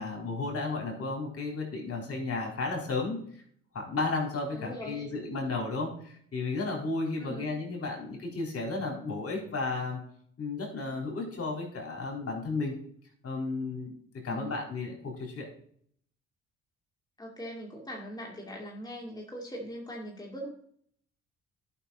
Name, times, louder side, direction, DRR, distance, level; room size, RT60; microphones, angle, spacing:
voice 1, 0.0-3.4 3.7-10.0 10.4-12.7 13.2-14.0 14.2-15.5, left 3 dB, 45° left, 0 dB, 3.9 m, -33 dB
voice 2, 4.5-5.1 7.2-7.5 14.3-14.6 17.2-20.5, equal, 10° left, -1 dB, 2.4 m, -41 dB
11.0 x 5.9 x 4.0 m, 0.62 s
hypercardioid pair, 50°, 32 cm